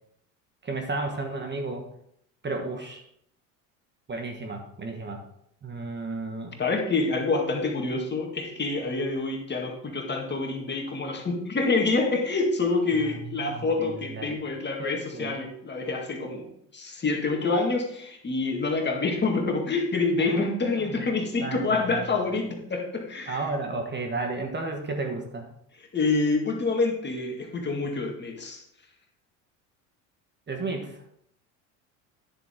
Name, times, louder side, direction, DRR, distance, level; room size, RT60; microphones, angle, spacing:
voice 1, 0.6-1.8 2.4-3.0 4.1-5.2 5.6-6.5 13.0-14.4 14.8-15.3 20.2-20.9 21.4-21.8 23.3-25.5 30.5-31.0, right 3 dB, 25° right, 4 dB, 1.4 m, -33 dB
voice 2, 6.6-16.5 16.7-23.4 25.9-28.6, left 3 dB, 25° left, 2 dB, 2.0 m, -27 dB
10.0 x 6.9 x 3.7 m, 0.72 s
supercardioid pair, 85°, 41 cm